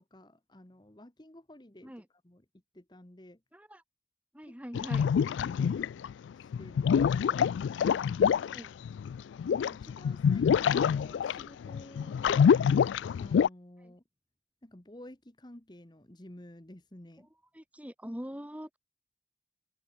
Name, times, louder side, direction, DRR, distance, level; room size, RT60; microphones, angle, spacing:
voice 1, 0.0-1.9 2.2-2.4 2.7-3.4 4.5-4.8 5.4-5.8 6.3-7.5 9.4-12.7 13.2-14.0 14.6-17.3, left 1 dB, 25° left, 1.2 m, -52 dB
voice 2, 3.5-3.8 4.3-5.1 8.5-8.7 13.8-13.9 17.5-18.8, equal, 10° right, 2.2 m, -43 dB
sound 1, 4.7-6.1 6.5-13.5, left 7 dB, 80° left, 0.3 m, -26 dB
open air
head